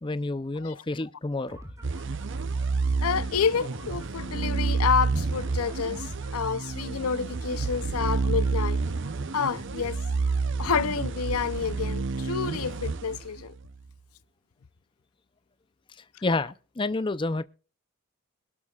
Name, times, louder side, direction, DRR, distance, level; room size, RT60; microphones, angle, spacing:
voice 1, 0.0-1.6 16.2-17.4, left 2 dB, 20° left, 0.6 m, -29 dB
sound 1, 1.5-10.5, equal, 15° right, 2.6 m, -47 dB
sound 2, 1.8-13.7, right 4 dB, 55° right, 0.7 m, -29 dB
voice 2, 3.0-8.8 9.3-10.0 10.3-13.5, left 6 dB, 90° left, 0.6 m, -29 dB
22.0 x 12.5 x 2.4 m
head